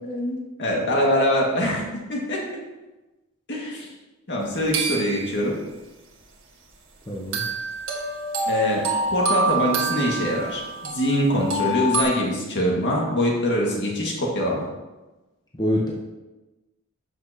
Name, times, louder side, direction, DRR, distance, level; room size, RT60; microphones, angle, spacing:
voice 1, 0.0-1.8 2.1-2.4 3.5-3.9 4.3-5.5 8.5-8.8 9.1-14.6, equal, 55° left, -2 dB, 1.9 m, -23 dB
sound 1, 4.7-5.4 7.3-12.0, right 2 dB, 65° right, 1.6 m, -26 dB
voice 2, 7.1-7.4 15.5-15.9, equal, 20° left, -4 dB, 1.0 m, -25 dB
11.5 x 6.1 x 2.9 m, 1.1 s
head